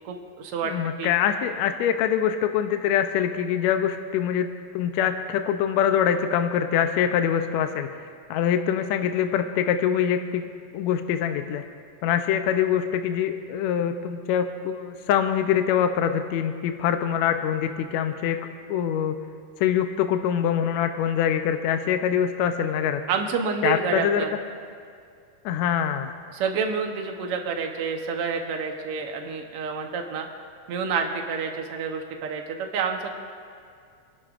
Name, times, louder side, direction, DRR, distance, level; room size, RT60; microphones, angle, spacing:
voice 1, 0.0-0.7 1.0-1.1 23.1-24.3 26.3-30.3 30.7-33.1, right 5 dB, 70° right, 3 dB, 1.4 m, -28 dB
voice 2, 0.7-10.5 10.7-11.6 12.0-18.4 18.7-19.2 19.6-23.0 23.6-24.3 25.5-26.1, left 9 dB, 80° left, 7 dB, 1.7 m, -24 dB
29.0 x 11.5 x 2.5 m, 2.2 s
omnidirectional pair, 3.7 m